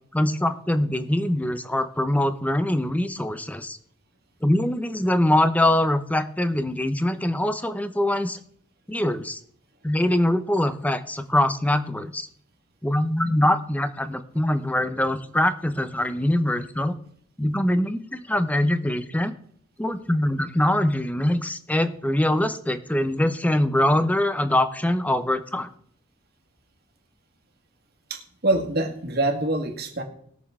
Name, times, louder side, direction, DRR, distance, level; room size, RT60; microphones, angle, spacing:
voice 1, 0.1-3.8 4.4-8.4 8.9-9.4 9.8-12.3 12.8-17.0 17.4-19.3 19.8-25.7, left 1 dB, 10° left, 10 dB, 0.8 m, -23 dB
voice 2, 28.1-30.0, right 2 dB, 55° right, 3 dB, 2.1 m, -25 dB
20.5 x 6.8 x 3.7 m, 0.63 s
head